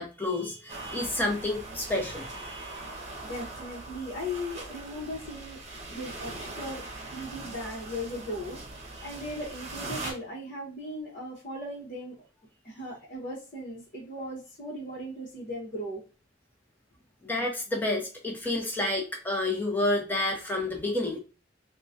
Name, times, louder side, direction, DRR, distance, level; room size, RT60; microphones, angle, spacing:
voice 1, 0.0-2.8 10.0-10.1 17.2-21.2, left 2 dB, 10° left, 0 dB, 0.9 m, -30 dB
sound 1, 0.7-10.1, right 2 dB, 40° right, 0.9 m, -41 dB
voice 2, 3.2-5.6 5.9-6.8 7.1-8.6 9.0-12.3 12.6-16.0, left 1 dB, 50° left, -6 dB, 1.1 m, -37 dB
3.7 x 2.3 x 2.7 m, 0.33 s
head